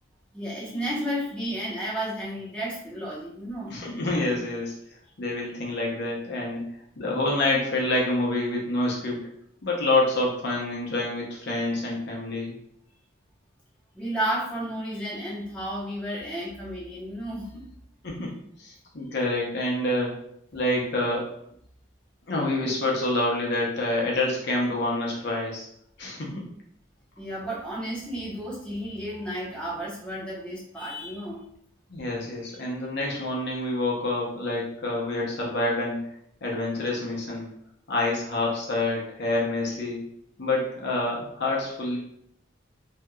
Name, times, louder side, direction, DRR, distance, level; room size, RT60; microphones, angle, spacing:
voice 1, 0.3-3.7 13.9-17.6 27.2-31.4, equal, 5° left, -7 dB, 1.0 m, -32 dB
voice 2, 3.7-4.7 5.2-6.6 7.0-9.2 9.6-12.6 18.0-20.1 20.5-21.3 22.3-25.7 26.0-26.5 31.9-36.0 36.4-37.5 37.9-40.0 40.4-42.0, left 2 dB, 60° left, -3 dB, 0.7 m, -27 dB
3.4 x 2.8 x 2.3 m, 0.72 s
head